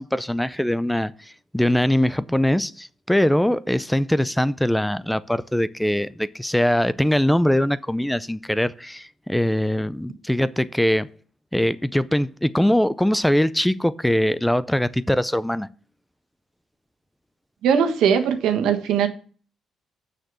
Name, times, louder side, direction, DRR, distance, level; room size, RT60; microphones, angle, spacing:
voice 1, 0.0-11.1 11.5-15.7, left 1 dB, 5° left, 0.4 m, -22 dB
voice 2, 17.6-19.1, right 7 dB, 85° right, 1.5 m, -20 dB
6.7 x 6.4 x 7.5 m
cardioid pair, 90°, 0 cm